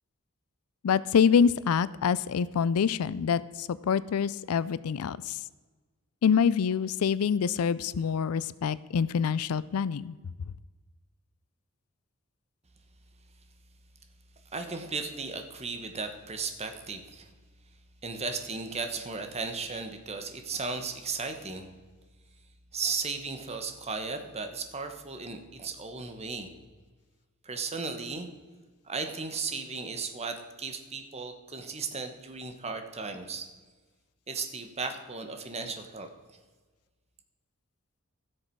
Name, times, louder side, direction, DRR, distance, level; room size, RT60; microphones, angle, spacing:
voice 1, 0.8-5.4 6.2-10.1, left 7 dB, 90° left, 18 dB, 0.4 m, -26 dB
voice 2, 14.5-17.3 18.0-21.7 22.7-26.5 27.4-28.3 28.8-33.5 34.3-36.1, right 4 dB, 30° right, 6 dB, 1.1 m, -35 dB
15.5 x 6.6 x 4.6 m, 1.3 s
head